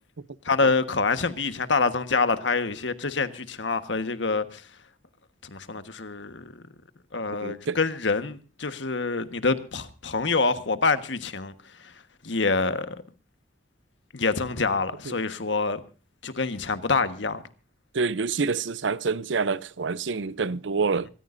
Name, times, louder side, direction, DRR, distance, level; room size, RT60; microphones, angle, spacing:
voice 1, 0.4-4.6 5.5-6.6 7.1-11.5 11.8-11.9 12.2-13.0 14.1-15.8 16.2-17.4, left 4 dB, 80° left, 1.4 m, -26 dB
voice 2, 7.4-7.8 15.1-15.2 17.9-21.1, right 4 dB, 85° right, 0.6 m, -27 dB
26.5 x 14.0 x 2.6 m
head